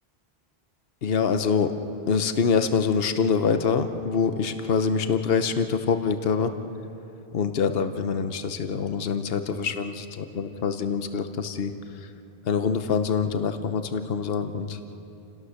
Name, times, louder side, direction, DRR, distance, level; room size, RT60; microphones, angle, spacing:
voice 1, 1.0-1.7 2.1-6.5 7.3-12.1 12.4-14.8, left 6 dB, 65° left, 8 dB, 1.1 m, -25 dB
29.0 x 18.0 x 6.5 m, 2.9 s
omnidirectional pair, 1.1 m